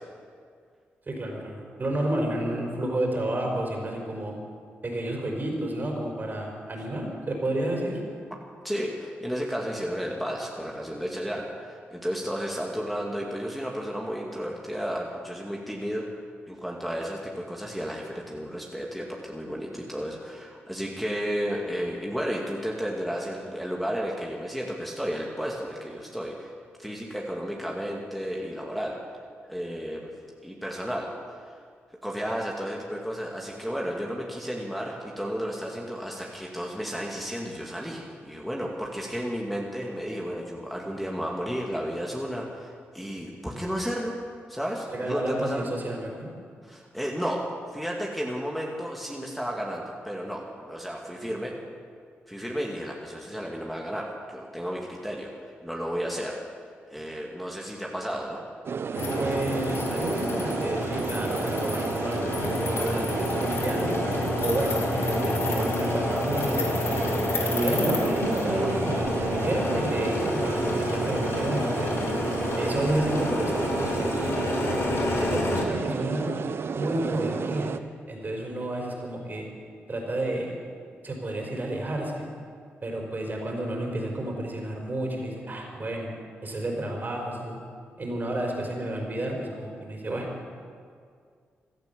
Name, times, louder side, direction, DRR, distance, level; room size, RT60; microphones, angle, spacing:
voice 1, 1.1-4.3 4.8-8.0 44.9-46.3 59.2-63.9 64.4-67.0 67.4-72.0 72.5-76.3 76.7-77.8 78.1-79.5 79.9-80.5 81.0-82.3 82.8-86.1 86.4-87.6 88.0-90.3, right 1 dB, 40° right, 0 dB, 4.9 m, -30 dB
voice 2, 8.6-16.1 16.5-26.5 26.8-29.0 29.5-30.1 30.4-31.5 32.0-44.2 44.5-45.7 46.6-47.4 47.7-51.5 52.3-56.4 56.9-58.4, equal, ahead, -2 dB, 2.5 m, -33 dB
sound 1, 58.7-77.8, right 6 dB, 60° right, 0.8 m, -32 dB
sound 2, 58.9-75.6, left 2 dB, 60° left, 2.5 m, -29 dB
16.5 x 12.0 x 7.0 m, 2.1 s
supercardioid pair, 45°, 5 cm